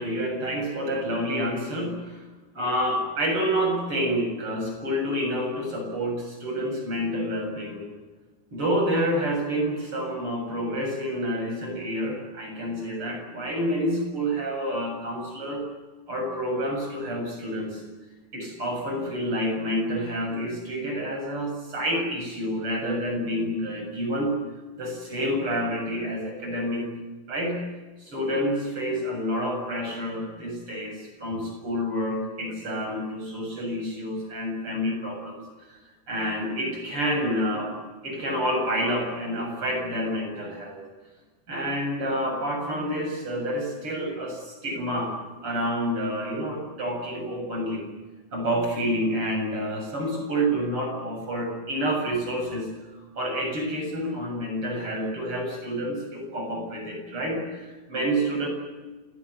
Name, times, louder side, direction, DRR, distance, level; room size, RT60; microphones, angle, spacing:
voice 1, 0.0-2.2 2.5-7.9 8.5-15.7 16.1-17.8 18.3-24.3 24.8-26.9 27.3-27.6 28.0-35.8 36.1-37.8 38.0-40.8 41.5-45.2 45.4-47.9 48.3-52.7 53.2-58.5, equal, 35° right, 2 dB, 8.1 m, -28 dB
27.5 x 19.0 x 9.9 m, 1.2 s
omnidirectional pair, 4.1 m